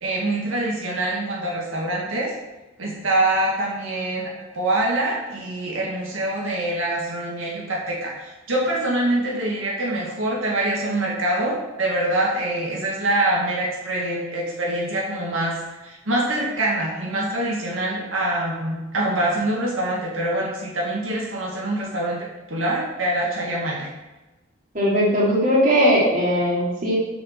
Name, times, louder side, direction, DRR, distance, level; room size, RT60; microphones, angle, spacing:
voice 1, 0.0-2.3 2.8-15.6 15.8-23.9, right 1 dB, 85° right, -4 dB, 2.0 m, -25 dB
voice 2, 24.7-27.0, equal, 40° right, -5 dB, 2.5 m, -19 dB
6.7 x 5.9 x 6.0 m, 1.1 s
head